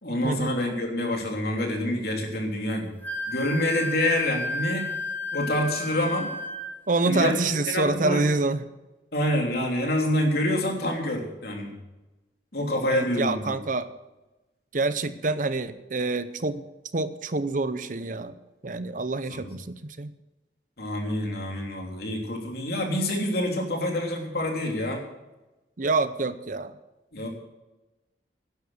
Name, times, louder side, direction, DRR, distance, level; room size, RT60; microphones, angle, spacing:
voice 1, 0.0-2.9 3.3-4.9 5.3-6.3 7.0-7.3 7.7-8.2 9.1-11.8 12.5-13.6 19.3-19.5 20.8-25.0 27.1-27.3, left 1 dB, 60° left, 1 dB, 3.2 m, -27 dB
Wind instrument woodwind instrument, 3.0-6.7, left 2 dB, 10° left, 1.6 m, -32 dB
voice 2, 6.9-8.6 12.9-13.9 14.7-16.6 16.9-18.3 18.6-20.1 25.8-26.7, right 3 dB, 50° right, 13 dB, 0.7 m, -27 dB
12.0 x 10.5 x 6.4 m, 1.0 s
head